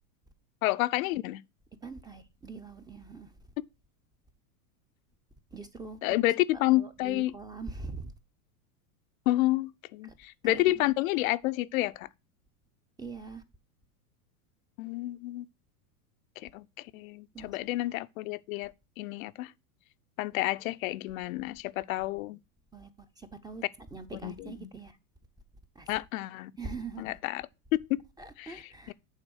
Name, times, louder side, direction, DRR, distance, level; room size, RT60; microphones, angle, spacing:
voice 1, 0.6-1.4 6.0-7.4 9.3-12.1 14.8-15.5 16.4-16.6 16.9-19.5 20.2-22.4 24.2-24.7 25.9-26.5 27.0-27.5 28.4-28.9, left 17 dB, 60° left, 0.6 m, -30 dB
voice 2, 1.8-3.3 5.5-6.3 6.7-8.1 10.4-10.9 13.0-13.4 17.3-17.6 22.7-23.6 23.9-24.9 25.8-25.9 26.6-27.2 28.2-28.9, right 4 dB, 10° right, 0.6 m, -43 dB
8.9 x 3.6 x 6.3 m
hypercardioid pair, 115°, 46 cm